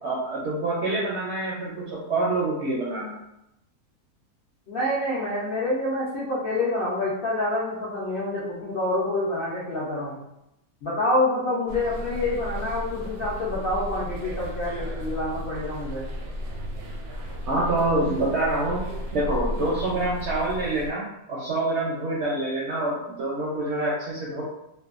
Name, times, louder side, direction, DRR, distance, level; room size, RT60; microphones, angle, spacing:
voice 1, 0.0-3.2 17.5-18.8 19.1-21.0 21.3-24.4, right 2 dB, 65° right, -5 dB, 0.7 m, -26 dB
voice 2, 4.7-10.2 10.8-16.0, left 1 dB, 65° left, -8 dB, 0.5 m, -27 dB
sound 1, 11.7-20.9, equal, 80° right, 1.1 m, -34 dB
2.6 x 2.2 x 2.4 m, 0.84 s
omnidirectional pair, 1.6 m